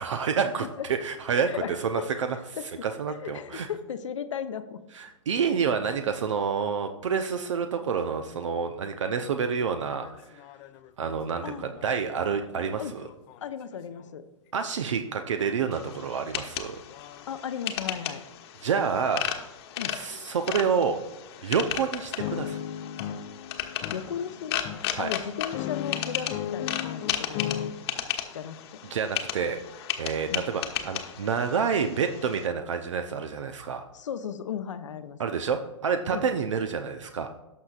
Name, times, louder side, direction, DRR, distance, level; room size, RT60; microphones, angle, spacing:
voice 1, 0.0-2.4 2.8-3.7 4.9-10.4 11.0-13.0 14.5-16.8 18.6-19.3 19.9-21.0 21.4-22.6 24.9-25.1 28.9-29.6 30.0-33.9 35.2-37.3, right 6 dB, 65° right, 7 dB, 0.7 m, -28 dB
voice 2, 2.6-2.9 3.2-4.8 11.4-11.7 12.8-12.9 13.4-14.2 17.3-18.2 19.8-20.0 23.9-24.6 25.0-27.5 28.3-28.6 30.3-30.5 33.9-35.2 36.1-36.2, left 8 dB, 65° left, 10 dB, 0.9 m, -35 dB
sound 1, 9.2-9.3 9.7-14.0 15.4-15.5 16.2-16.4 16.9-17.3 17.9-18.3 18.8-19.2 19.7-19.9 20.5-20.7 21.3-21.5 22.2-27.7, left 10 dB, 35° left, 0.6 m, -37 dB
sound 2, 15.7-32.5, left 10 dB, 50° left, 1.2 m, -35 dB
18.0 x 6.4 x 2.4 m, 1.0 s
figure-of-eight pair, 110°, 17 cm